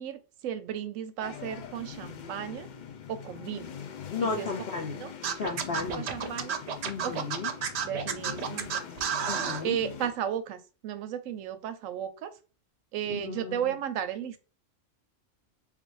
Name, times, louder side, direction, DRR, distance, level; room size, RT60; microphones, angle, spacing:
voice 1, 0.0-2.7 3.1-3.8 4.4-4.5 5.0-5.1 6.0-6.6 7.0-7.3 7.8-8.8 9.6-12.3 12.9-14.4, right 9 dB, 85° right, 10 dB, 1.0 m, -34 dB
sound 1, 1.2-10.1, left 7 dB, 80° left, 0.4 m, -42 dB
voice 2, 4.1-5.0 5.3-6.1 6.8-7.5 9.2-9.8 13.1-13.8, left 4 dB, 55° left, 1 dB, 0.8 m, -34 dB
Scratching (performance technique), 5.2-9.6, right 7 dB, 65° right, 0.8 m, -31 dB
3.5 x 2.5 x 3.1 m, 0.34 s
omnidirectional pair, 1.3 m